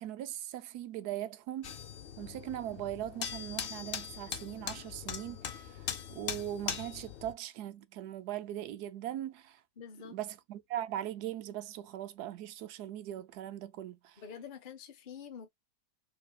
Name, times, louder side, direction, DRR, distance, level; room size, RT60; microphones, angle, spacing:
voice 1, 0.0-1.7 2.2-9.6 10.0-14.2, right 12 dB, 80° right, 1.1 m, -40 dB
sound 1, 1.6-7.3, left 8 dB, 75° left, 0.5 m, -41 dB
voice 2, 9.8-10.2 14.2-15.5, left 7 dB, 40° left, 0.8 m, -47 dB
4.4 x 3.2 x 2.3 m
omnidirectional pair, 1.7 m